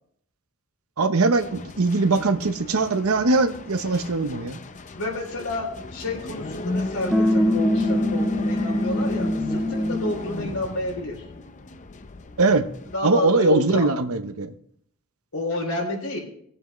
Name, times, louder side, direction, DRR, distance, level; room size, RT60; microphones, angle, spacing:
voice 1, 1.0-4.6 12.4-12.7 13.0-14.5, right 3 dB, 75° right, 10 dB, 0.9 m, -21 dB
sound 1, 1.3-13.0, left 2 dB, 35° left, 0.6 m, -33 dB
voice 2, 4.9-11.3 12.9-13.9 15.3-16.2, left 1 dB, 85° left, 0 dB, 3.4 m, -30 dB
sound 2, 7.1-10.3, left 1 dB, 5° right, 1.1 m, -23 dB
20.0 x 7.7 x 3.2 m, 0.68 s
head